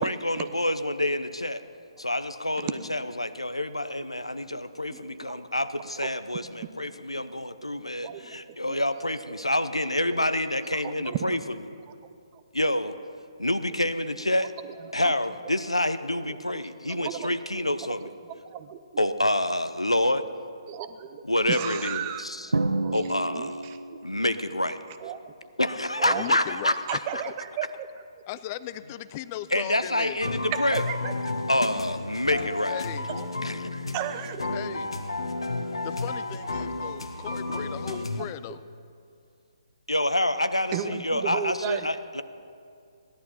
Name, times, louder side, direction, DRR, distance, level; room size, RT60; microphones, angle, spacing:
voice 1, 0.0-1.6 2.0-11.4 12.5-13.0 13.4-14.5 14.9-18.1 19.0-20.2 21.2-22.5 22.9-23.6 24.0-24.8 25.6-27.0 29.5-30.8 31.5-32.8 33.4-33.8 39.9-42.2, left 1 dB, 90° left, 12 dB, 0.7 m, -27 dB
voice 2, 4.9-5.4 6.0-6.1 7.2-7.3 7.8-8.8 9.3-9.4 10.7-11.4 12.3-12.4 14.8-15.1 16.1-17.7 18.3-19.1 20.7-21.2 21.5-24.0 25.0-25.3 26.0-26.3 26.9-27.9 30.5-31.1 33.1-33.6 33.9-34.6 36.8-36.9 37.9-38.0 38.5-38.6 40.7-41.9, right 10 dB, 25° right, 11 dB, 0.7 m, -35 dB
Drum, 22.5-24.2, right 2 dB, 75° right, 0.8 m, -29 dB
voice 3, 26.1-26.8 28.3-30.2 32.7-33.1 34.5-34.9 35.8-38.6, left 13 dB, 25° left, 15 dB, 0.4 m, -37 dB
sound 1, 30.2-38.3, left 2 dB, 70° left, 1.2 m, -32 dB
17.5 x 11.5 x 5.7 m, 2.4 s
figure-of-eight pair, 135°, 3 cm